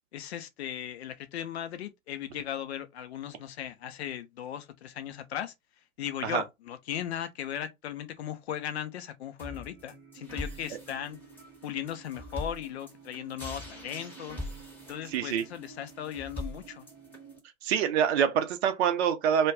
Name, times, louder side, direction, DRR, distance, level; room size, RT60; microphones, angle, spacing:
voice 1, 0.1-5.5 6.0-11.2 11.6-14.4 14.9-16.9, left 10 dB, 50° left, 0.6 m, -37 dB
sound 1, 9.4-17.4, equal, 5° left, 0.9 m, -43 dB
voice 2, 15.1-15.4 17.6-19.5, right 8 dB, 50° right, 0.5 m, -25 dB
2.2 x 2.2 x 3.4 m
figure-of-eight pair, 100°, 42 cm